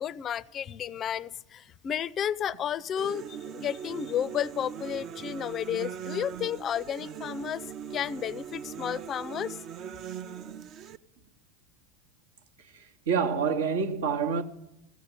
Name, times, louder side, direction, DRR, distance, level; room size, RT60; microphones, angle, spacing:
voice 1, 0.0-7.6 7.9-9.6, left 9 dB, 35° left, 0.5 m, -32 dB
sound 1, 3.0-11.0, right 8 dB, 45° right, 0.6 m, -40 dB
voice 2, 13.1-14.4, right 6 dB, 70° right, 1.0 m, -26 dB
14.0 x 8.6 x 9.1 m
figure-of-eight pair, 80°, 0 cm